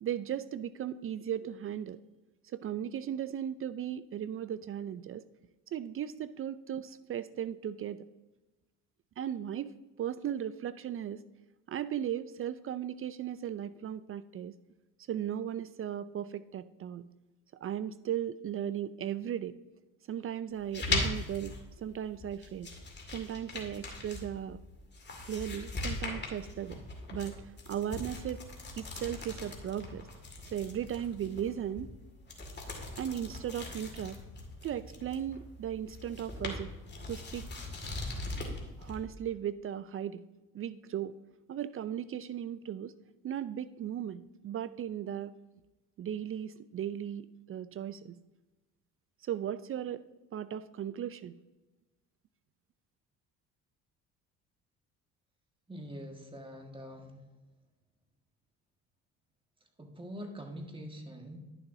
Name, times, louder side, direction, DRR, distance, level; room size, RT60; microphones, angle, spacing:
voice 1, 0.0-2.0 2.4-5.3 5.7-8.1 9.2-9.7 10.0-11.2 11.7-14.5 15.1-17.1 17.6-19.6 20.1-22.7 23.1-24.6 25.2-26.8 27.1-28.4 28.8-30.1 30.5-31.9 33.0-34.2 34.6-36.7 37.1-37.5 38.8-40.2 40.5-41.2 41.5-42.9 43.2-45.3 46.0-48.2 49.2-50.1 50.3-51.4, right 10 dB, 40° right, 15 dB, 0.4 m, -37 dB
sound 1, 20.5-39.0, left 2 dB, 30° left, 2.2 m, -40 dB
voice 2, 55.7-57.2 59.8-61.4, equal, 15° right, 3 dB, 1.6 m, -44 dB
11.0 x 7.0 x 2.7 m, 1.1 s
supercardioid pair, 85°, 35 cm